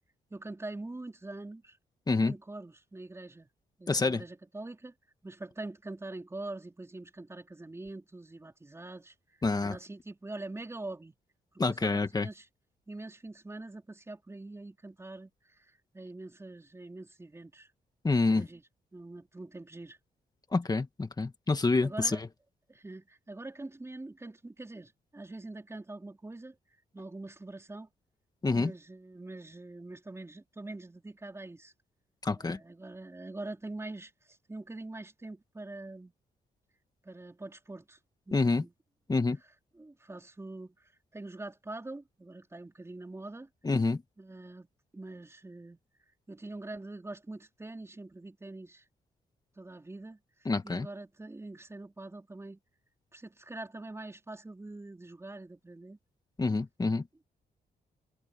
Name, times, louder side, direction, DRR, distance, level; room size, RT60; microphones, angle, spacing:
voice 1, 0.3-1.8 2.2-3.5 3.8-4.9 5.2-9.1 9.6-11.2 11.5-12.5 12.9-17.7 18.3-18.6 18.9-20.0 21.8-22.2 22.7-26.6 26.9-27.9 28.5-31.7 32.3-36.1 37.0-38.0 38.3-38.7 39.7-43.5 44.2-44.7 44.9-45.8 46.3-48.9 49.6-50.2 50.6-52.6 53.1-56.0, right 2 dB, 15° right, 4.5 m, -44 dB
voice 2, 3.9-4.2 9.4-9.8 11.6-12.3 18.0-18.5 20.5-22.3 28.4-28.7 32.2-32.6 38.3-38.6 39.1-39.4 43.6-44.0 50.5-50.9 56.4-57.1, left 3 dB, 25° left, 1.8 m, -27 dB
cardioid pair, 110°, 16 cm